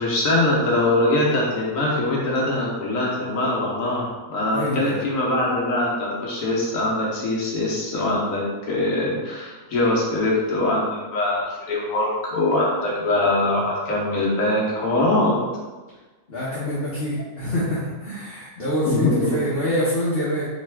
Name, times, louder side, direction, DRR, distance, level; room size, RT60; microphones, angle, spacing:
voice 1, 0.0-15.4 18.8-19.4, left 2 dB, 70° left, -4 dB, 1.2 m, -22 dB
voice 2, 4.5-5.0 16.3-20.4, equal, 45° left, -9 dB, 1.1 m, -25 dB
4.2 x 3.2 x 3.4 m, 1.3 s
omnidirectional pair, 1.5 m